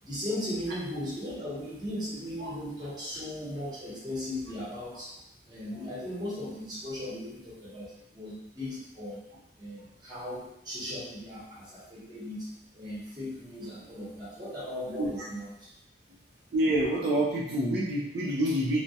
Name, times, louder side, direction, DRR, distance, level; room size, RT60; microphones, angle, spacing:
voice 1, 0.0-5.1 5.4-9.2 9.6-15.8, left 1 dB, 25° right, -8 dB, 0.8 m, -37 dB
voice 2, 16.5-18.8, right 1 dB, 65° right, -5 dB, 0.4 m, -27 dB
2.3 x 2.1 x 2.6 m, 0.79 s
head